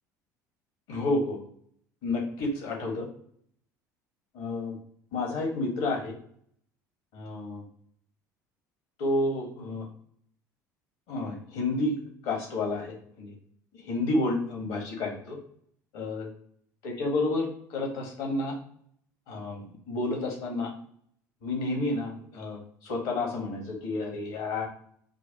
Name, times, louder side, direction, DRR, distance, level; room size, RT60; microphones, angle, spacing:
voice 1, 0.9-1.4 2.0-3.1 4.3-4.8 5.1-6.1 7.1-7.6 9.0-9.8 11.1-11.9 12.2-13.3 13.8-15.4 15.9-16.3 16.8-18.6 19.3-20.7 21.4-22.6 22.8-24.7, left 2 dB, 60° left, 1 dB, 1.3 m, -30 dB
5.2 x 2.0 x 2.9 m, 0.62 s
figure-of-eight pair, 65°, 10 cm